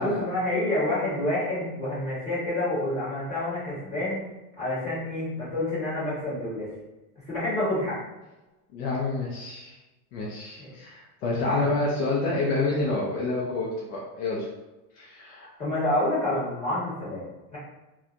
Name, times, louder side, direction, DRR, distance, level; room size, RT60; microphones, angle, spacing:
voice 1, 0.0-4.3 4.6-6.7 7.3-8.0 10.6-10.7 11.5-11.7 15.6-17.3 17.5-17.6, left 1 dB, 15° left, -11 dB, 1.3 m, -28 dB
voice 2, 8.7-9.8 10.1-14.5 15.0-15.5, left 2 dB, 60° left, -4 dB, 0.7 m, -28 dB
2.9 x 2.3 x 2.5 m, 1.1 s
supercardioid pair, 165°, 45 cm